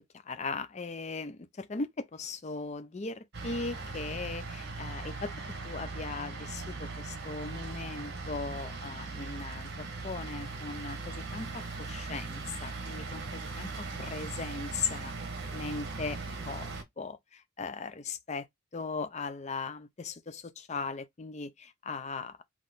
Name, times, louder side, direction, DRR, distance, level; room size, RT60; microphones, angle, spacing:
voice 1, 0.1-5.3 5.6-15.1 15.5-18.5 18.7-22.4, left 4 dB, 30° left, 0.5 m, -38 dB
sound 1, 3.3-16.8, right 3 dB, 50° right, 1.1 m, -39 dB
3.9 x 3.0 x 3.9 m
head